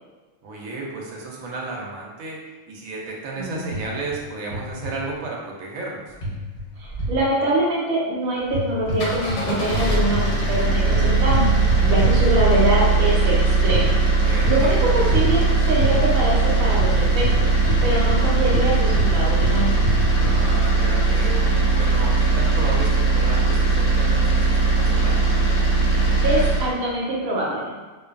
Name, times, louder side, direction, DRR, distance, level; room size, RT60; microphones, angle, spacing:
voice 1, 0.4-6.2 14.2-14.8 20.1-25.2, right 3 dB, 90° right, -2 dB, 1.0 m, -33 dB
voice 2, 3.4-3.7 6.8-11.5 11.8-13.4 13.6-14.0 14.4-17.5 17.8-19.7 26.2-27.7, right 1 dB, 55° right, -5 dB, 0.8 m, -24 dB
sound 1, 3.7-4.2 4.5-5.0 6.2-7.2 8.4-9.4 9.7-12.7 13.7-13.9 14.4-14.7 15.1-15.3 15.8-16.0 16.8-18.2 18.5-20.4, equal, 50° left, 1.0 m, -27 dB
sound 2, 8.8-26.7, right 3 dB, 70° left, 0.9 m, -19 dB
2.6 x 2.2 x 2.3 m, 1.3 s
omnidirectional pair, 1.4 m